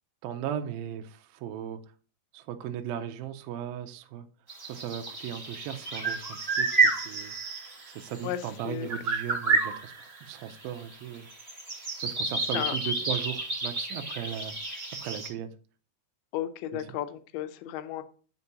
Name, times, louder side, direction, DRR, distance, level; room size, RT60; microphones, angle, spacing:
voice 1, 0.2-1.8 2.3-4.2 4.6-7.3 8.0-9.9 10.2-11.3 12.0-15.5 16.7-16.8, right 10 dB, 80° right, 2.3 m, -37 dB
sound 1, 4.5-8.6 8.9-15.3, right 3 dB, 20° right, 1.9 m, -30 dB
voice 2, 16.3-18.0, left 12 dB, 85° left, 2.5 m, -33 dB
9.6 x 4.4 x 2.8 m
omnidirectional pair, 4.5 m